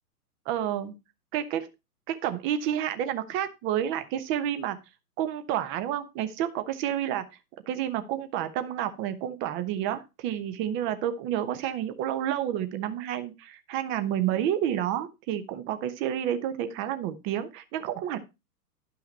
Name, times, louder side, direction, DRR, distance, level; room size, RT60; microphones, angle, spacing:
voice 1, 0.5-0.9 1.3-1.7 2.1-4.8 5.2-7.2 7.7-18.2, right 10 dB, 25° right, 11 dB, 1.0 m, -30 dB
11.0 x 5.8 x 4.2 m, 0.26 s
figure-of-eight pair, 115°, 48 cm